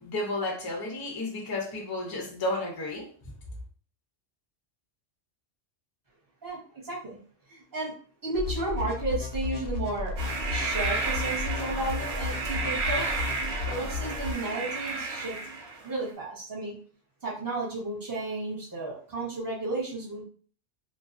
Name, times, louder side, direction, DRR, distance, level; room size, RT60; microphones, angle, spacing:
voice 1, 0.0-3.3, left 2 dB, 30° left, 0 dB, 0.4 m, -32 dB
voice 2, 6.4-7.2 7.5-7.9 8.2-10.1 10.5-13.1 13.7-15.4 15.8-16.7 17.2-20.2, right 2 dB, 20° right, -5 dB, 0.9 m, -33 dB
sound 1, 8.3-14.3, left 4 dB, 65° left, 0.7 m, -34 dB
sound 2, 10.2-15.9, right 4 dB, 70° right, 0.8 m, -32 dB
2.3 x 2.3 x 2.5 m, 0.44 s
omnidirectional pair, 1.2 m